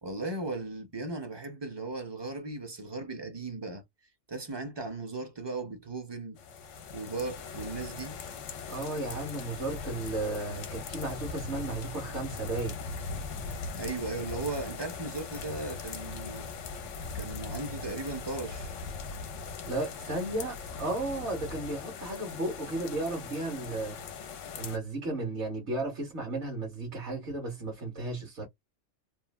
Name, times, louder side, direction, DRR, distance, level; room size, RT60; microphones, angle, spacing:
voice 1, 0.0-3.8 4.3-6.4 6.9-8.2 13.8-16.5 17.1-18.7, right 3 dB, 35° right, 0.4 m, -37 dB
sound 1, 6.4-24.8, left 4 dB, 80° left, 1.0 m, -40 dB
voice 2, 8.7-12.8 19.6-24.0 24.6-28.5, right 2 dB, 65° right, 1.5 m, -34 dB
3.1 x 2.2 x 2.3 m
omnidirectional pair, 1.3 m